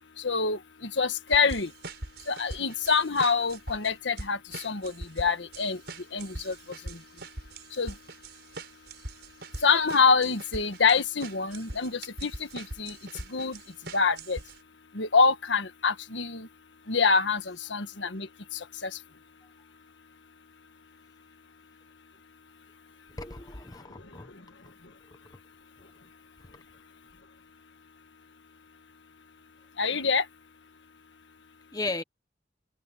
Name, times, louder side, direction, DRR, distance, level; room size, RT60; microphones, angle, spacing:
voice 1, 0.2-0.6 1.0-1.7 2.3-4.4 4.6-5.8 6.1-6.5 7.8-7.9 9.6-12.9 13.3-13.6 13.9-14.4 14.9-16.5 16.9-18.3 29.8-30.2, left 5 dB, 85° left, 1.5 m, -25 dB
sound 1, 1.3-14.6, right 2 dB, 65° right, 5.7 m, -42 dB
voice 2, 23.2-24.3 31.7-32.0, left 3 dB, 20° left, 0.9 m, -35 dB
head